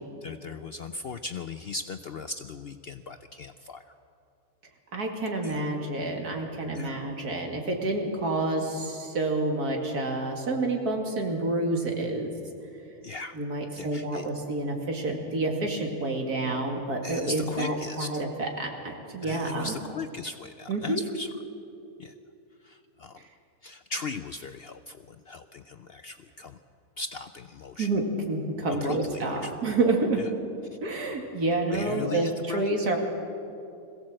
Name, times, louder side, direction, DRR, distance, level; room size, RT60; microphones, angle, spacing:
voice 1, 0.2-4.0 5.4-5.6 6.7-7.0 13.0-13.4 13.7-14.3 17.0-18.2 19.2-21.3 22.0-22.1 22.6-23.2 23.6-26.6 27.0-27.9 28.7-29.5 30.2-30.3 30.7-30.8 31.7-32.7, left 4 dB, 65° left, 10 dB, 0.6 m, -38 dB
voice 2, 4.9-12.3 13.3-19.7 20.7-21.0 27.8-30.2 30.8-33.0, right 2 dB, 85° right, 2 dB, 2.8 m, -28 dB
21.5 x 16.0 x 7.6 m, 2.6 s
omnidirectional pair, 1.6 m